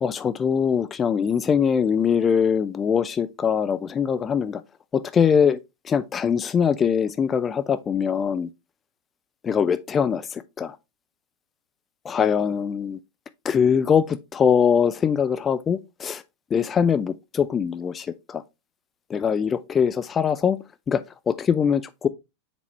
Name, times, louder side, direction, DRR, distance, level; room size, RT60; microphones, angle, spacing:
voice 1, 0.0-4.6 4.9-5.6 5.8-8.5 9.4-10.8 12.0-13.0 13.4-16.2 16.5-18.4 19.1-20.6 20.9-22.1, left 7 dB, 20° left, 0.3 m, -22 dB
6.9 x 4.1 x 3.3 m
figure-of-eight pair, 90°, 0 cm